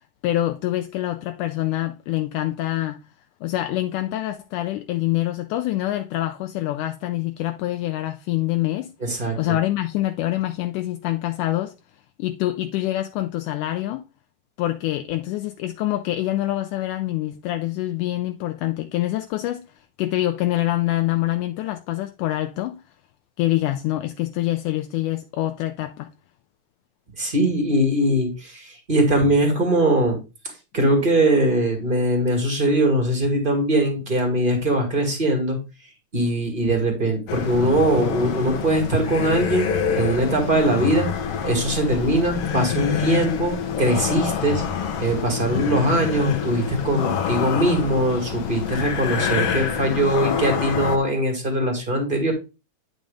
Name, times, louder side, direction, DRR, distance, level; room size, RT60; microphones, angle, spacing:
voice 1, 0.2-3.0 3.4-8.9 9.4-11.7 12.2-14.1 14.6-19.7 20.0-22.8 23.4-26.1, left 15 dB, 80° left, 2.0 m, -25 dB
voice 2, 9.0-9.4 27.2-30.2 30.7-35.6 36.1-41.1 41.4-44.6 45.0-52.3, right 1 dB, 20° right, 1.7 m, -21 dB
sound 1, 37.3-51.0, left 7 dB, 65° left, 1.6 m, -26 dB
9.3 x 5.2 x 3.4 m
omnidirectional pair, 3.7 m